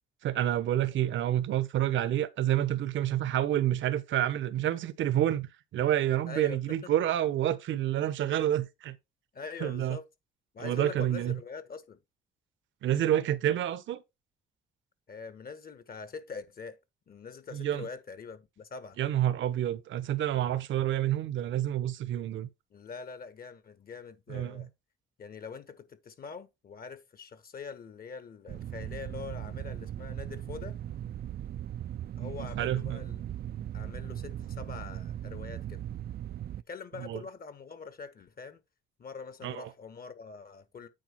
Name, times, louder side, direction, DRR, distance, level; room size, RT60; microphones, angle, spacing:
voice 1, 0.2-9.0 9.6-10.0 10.6-11.4 12.8-14.0 17.5-17.9 19.0-22.5 24.3-24.7 32.2-33.1 37.0-37.2 39.4-39.7, right 12 dB, 75° right, 1.0 m, -29 dB
voice 2, 6.3-6.9 9.3-10.1 10.5-12.0 15.1-16.8 17.1-19.0 22.7-24.7 25.2-30.8 32.2-33.4 33.7-35.8 36.7-38.6 39.0-40.9, left 5 dB, 50° left, 1.5 m, -44 dB
sound 1, 28.5-36.6, right 11 dB, 50° right, 0.4 m, -38 dB
9.1 x 4.8 x 4.5 m
cardioid pair, 90°, 20 cm